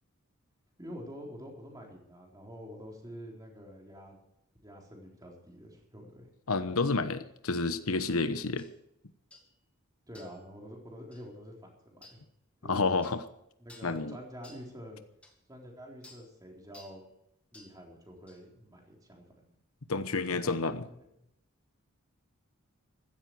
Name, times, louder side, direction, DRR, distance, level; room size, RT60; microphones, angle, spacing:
voice 1, 0.8-4.2 4.6-6.3 10.1-11.5 11.9-12.2 12.6-12.9 13.6-15.0 15.5-17.0 17.5-19.5 20.3-20.6 21.2-21.3, equal, 15° right, 0 dB, 3.9 m, -47 dB
voice 2, 6.5-8.7 12.6-13.2 13.8-14.2 19.9-20.8, left 3 dB, 85° left, 11 dB, 1.0 m, -30 dB
sound 1, 8.6-8.7 9.3-9.5 10.1-10.4 11.1-11.3 12.0-12.2 13.0-13.2 13.7-14.0 14.4-14.7 15.2-15.3 16.0-16.3 16.7-17.0 17.5-17.8 18.3-18.4, left 2 dB, 5° left, 2.1 m, -55 dB
15.5 x 13.5 x 4.8 m, 0.77 s
head